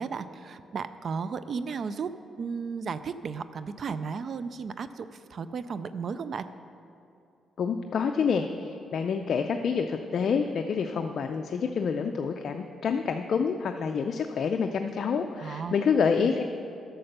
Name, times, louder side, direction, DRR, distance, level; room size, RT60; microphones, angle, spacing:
voice 1, 0.0-2.1 2.4-6.5 15.4-15.8 16.2-16.3, right 5 dB, 50° right, 13 dB, 0.3 m, -34 dB
voice 2, 7.6-16.4, left 6 dB, 60° left, 5 dB, 0.4 m, -27 dB
8.5 x 6.6 x 6.6 m, 2.7 s
cardioid pair, 105°, 0 cm